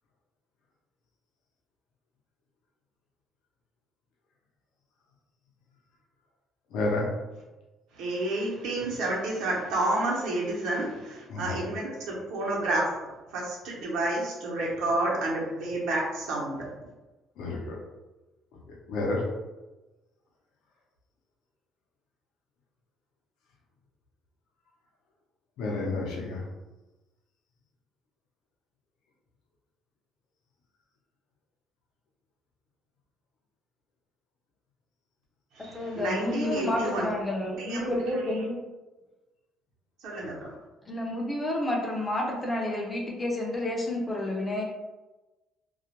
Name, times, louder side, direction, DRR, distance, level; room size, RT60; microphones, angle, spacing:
voice 1, 6.7-7.1 11.3-11.5 17.4-17.8 18.9-19.2 25.6-26.4, left 2 dB, 70° left, -1 dB, 0.6 m, -30 dB
voice 2, 7.9-12.8 13.3-16.6 35.5-37.1 37.6-37.9 40.0-40.5, right 2 dB, 75° right, -4 dB, 0.8 m, -30 dB
voice 3, 35.7-38.6 40.9-44.6, left 1 dB, 15° left, -1 dB, 0.4 m, -30 dB
2.3 x 2.1 x 2.9 m, 1.1 s
cardioid pair, 170°, 0 cm